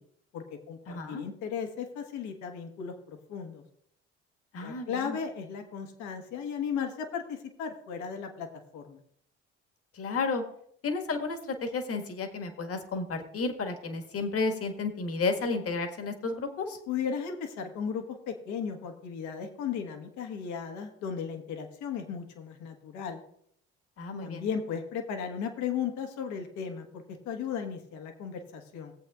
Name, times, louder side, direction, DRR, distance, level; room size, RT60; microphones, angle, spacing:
voice 1, 0.3-3.6 4.6-8.5 8.7-9.0 16.9-23.2 24.2-28.9, left 7 dB, 70° left, 5 dB, 1.5 m, -36 dB
voice 2, 0.9-1.2 4.5-5.2 9.9-10.4 10.8-16.8 24.0-24.5, left 4 dB, 50° left, 6 dB, 1.7 m, -32 dB
18.0 x 7.9 x 2.4 m, 0.69 s
hypercardioid pair, 55°, 31 cm